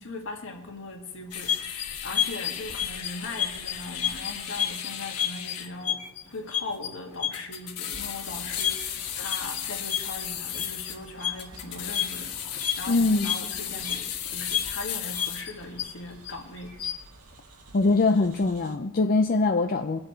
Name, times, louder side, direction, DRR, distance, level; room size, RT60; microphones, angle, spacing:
voice 1, 0.0-6.0 6.3-16.8, left 2 dB, 60° left, 2 dB, 2.1 m, -39 dB
sound 1, 1.3-16.3 16.7-17.1, left 9 dB, 90° left, 1.3 m, -31 dB
sound 2, 7.9-18.8, right 3 dB, 70° right, 1.9 m, -50 dB
voice 2, 12.9-13.3 17.7-20.0, left 3 dB, 40° left, 6 dB, 0.5 m, -22 dB
22.0 x 7.7 x 4.5 m, 0.99 s
head